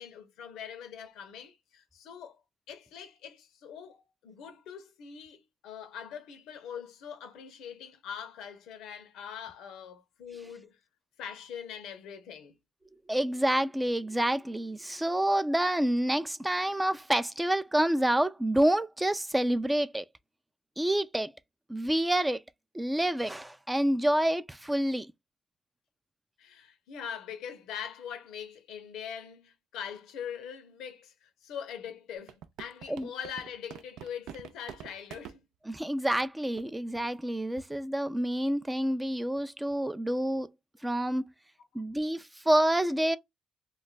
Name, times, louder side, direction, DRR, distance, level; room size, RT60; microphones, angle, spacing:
voice 1, 0.0-2.4 2.7-10.8 11.2-12.5 26.4-35.4, left 8 dB, 90° left, 0.7 m, -42 dB
voice 2, 13.1-20.0 20.8-21.3 21.7-22.4 22.7-25.1 32.9-33.1 35.7-40.5 40.8-41.2 41.7-43.2, right 1 dB, 10° right, 0.3 m, -28 dB
sound 1, 32.2-35.4 36.1-36.2 36.6-36.7 37.0-37.2 37.6-37.8, right 10 dB, 85° right, 0.3 m, -45 dB
2.3 x 2.2 x 3.9 m
cardioid pair, 90°, 0 cm